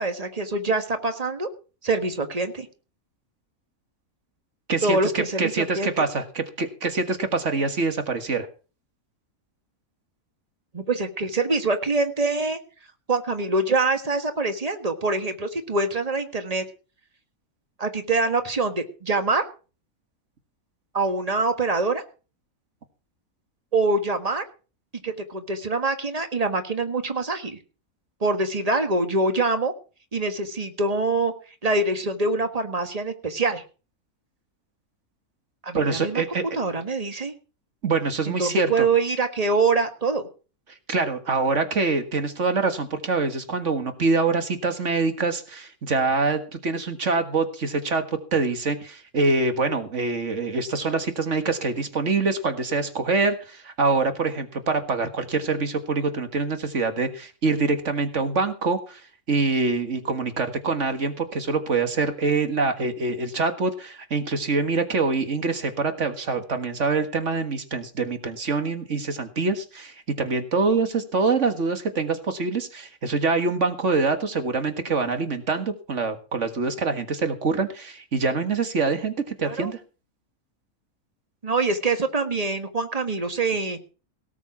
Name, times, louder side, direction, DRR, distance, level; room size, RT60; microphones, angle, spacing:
voice 1, 0.0-1.5 1.8-2.7 4.8-5.9 10.7-12.6 13.1-16.6 17.8-19.5 20.9-22.0 23.7-24.4 25.0-27.6 28.2-29.7 30.1-31.3 31.6-33.6 35.6-36.2 36.5-37.3 38.3-40.3 79.4-79.7 81.4-83.8, right 3 dB, 25° right, 8 dB, 1.6 m, -24 dB
voice 2, 4.7-8.5 35.7-36.4 37.8-38.9 40.9-59.0 59.3-79.8, right 4 dB, 55° right, 8 dB, 2.0 m, -25 dB
18.0 x 7.2 x 6.0 m, 0.37 s
omnidirectional pair, 1.5 m